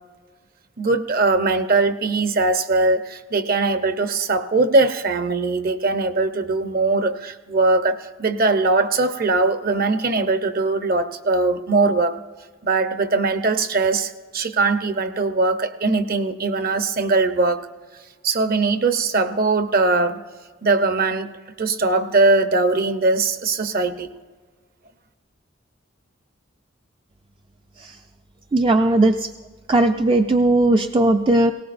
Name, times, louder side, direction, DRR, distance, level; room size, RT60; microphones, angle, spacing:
voice 1, 0.8-12.2 12.6-17.6 18.2-20.2 20.6-21.3 21.6-24.1, right 3 dB, 50° right, 9 dB, 0.8 m, -20 dB
voice 2, 28.5-29.3 29.7-31.5, right 2 dB, 25° right, 5 dB, 0.4 m, -17 dB
19.5 x 18.0 x 2.6 m, 1.4 s
head